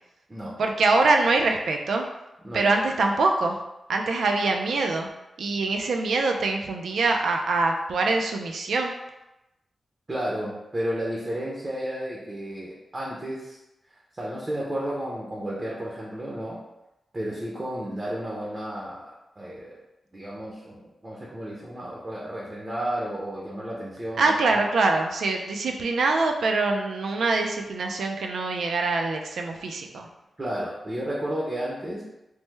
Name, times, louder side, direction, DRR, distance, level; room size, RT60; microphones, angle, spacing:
voice 1, 0.6-2.1 2.5-3.6 3.9-5.1 5.4-8.9 24.2-30.1, right 3 dB, 85° right, 3 dB, 0.4 m, -24 dB
voice 2, 10.1-13.6 14.2-16.6 17.1-19.8 20.1-24.4 30.4-32.0, right 1 dB, 25° right, -5 dB, 0.5 m, -32 dB
3.2 x 2.1 x 3.1 m, 0.93 s
wide cardioid pair, 160°, 0 cm